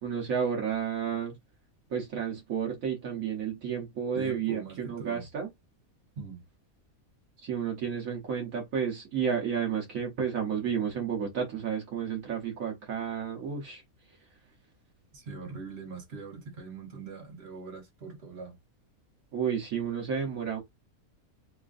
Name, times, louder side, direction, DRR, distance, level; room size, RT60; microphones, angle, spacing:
voice 1, 0.0-1.3 1.9-5.5 7.4-13.8 14.1-14.2 19.3-20.6, right 7 dB, 70° right, 1.3 m, -31 dB
voice 2, 4.1-5.3 6.2-6.4 15.1-18.5, right 4 dB, 45° right, 1.5 m, -42 dB
4.9 x 2.5 x 2.4 m
omnidirectional pair, 1.5 m